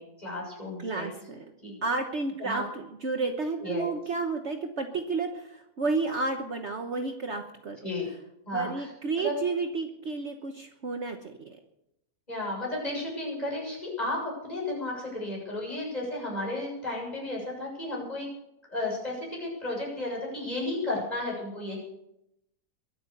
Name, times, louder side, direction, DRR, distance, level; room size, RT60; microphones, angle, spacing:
voice 1, 0.0-1.1 1.6-1.8 2.4-2.6 3.6-3.9 7.8-8.1 8.5-8.8 9.2-9.3 12.3-18.3 18.7-21.8, left 2 dB, 25° left, -3 dB, 7.2 m, -33 dB
voice 2, 0.8-1.5 1.8-7.8 8.5-11.6, right 3 dB, 50° right, 5 dB, 1.3 m, -31 dB
23.0 x 8.8 x 6.7 m, 0.82 s
omnidirectional pair, 1.6 m